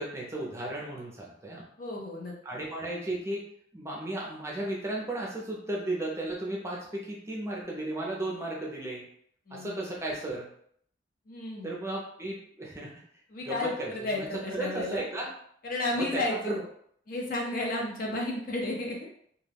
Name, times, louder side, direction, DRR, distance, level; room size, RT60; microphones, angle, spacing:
voice 1, 0.0-1.7 2.4-3.4 3.7-9.1 9.5-10.5 11.6-13.0 13.4-14.3 14.5-15.3 15.9-16.5, right 1 dB, 15° right, -3 dB, 0.5 m, -35 dB
voice 2, 1.8-2.6 9.5-9.9 11.3-11.7 13.3-15.0 15.6-16.6 17.1-19.1, left 2 dB, 50° left, -1 dB, 0.6 m, -33 dB
2.3 x 2.2 x 3.3 m, 0.65 s
head